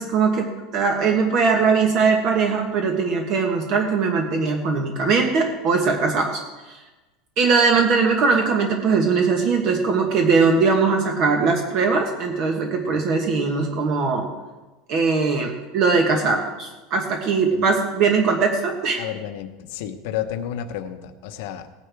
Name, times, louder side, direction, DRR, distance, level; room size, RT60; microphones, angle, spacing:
voice 1, 0.0-6.4 6.7-6.8 7.4-14.3 14.9-19.0, right 4 dB, 40° right, 3 dB, 1.3 m, -20 dB
voice 2, 19.0-21.7, left 10 dB, 65° left, 7 dB, 1.0 m, -31 dB
17.5 x 9.8 x 3.5 m, 1.2 s
supercardioid pair, 170°, 0 cm